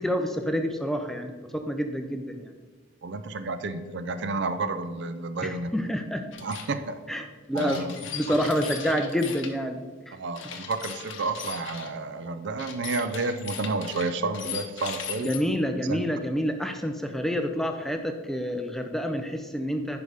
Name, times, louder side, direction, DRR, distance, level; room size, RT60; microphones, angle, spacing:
voice 1, 0.0-2.5 5.4-6.2 7.1-10.2 15.2-20.0, equal, ahead, 5 dB, 0.4 m, -28 dB
voice 2, 3.0-5.7 6.4-7.0 7.5-7.9 8.8-9.0 10.1-15.4 15.9-16.0, right 3 dB, 60° right, 10 dB, 0.5 m, -31 dB
sound 1, 6.3-6.7 7.6-9.5 10.3-11.9 12.6-15.4, left 7 dB, 65° left, 0.8 m, -38 dB
10.5 x 5.0 x 3.4 m, 1.4 s
head